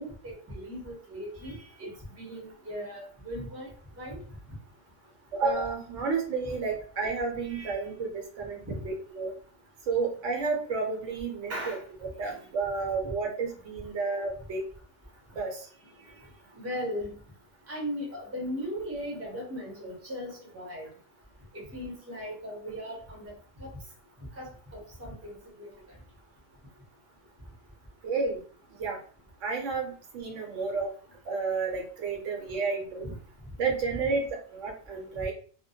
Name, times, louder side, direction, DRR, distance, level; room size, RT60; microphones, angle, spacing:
voice 1, 0.0-1.9 2.2-3.7 4.0-4.2 7.4-7.8 8.7-8.8 11.5-11.8 12.3-12.4 16.6-17.2 17.7-20.9 21.5-23.2 23.6-23.7 24.4-25.3 25.6-25.7 33.0-33.1, equal, 15° right, -2 dB, 0.6 m, -37 dB
voice 2, 5.3-9.3 9.9-11.5 12.2-14.6 15.3-15.7 28.0-28.4 28.8-29.0 29.4-30.9 31.2-33.1 33.6-34.3 34.5-35.3, right 4 dB, 70° right, 1 dB, 0.9 m, -31 dB
2.2 x 2.1 x 2.7 m, 0.43 s
omnidirectional pair, 1.3 m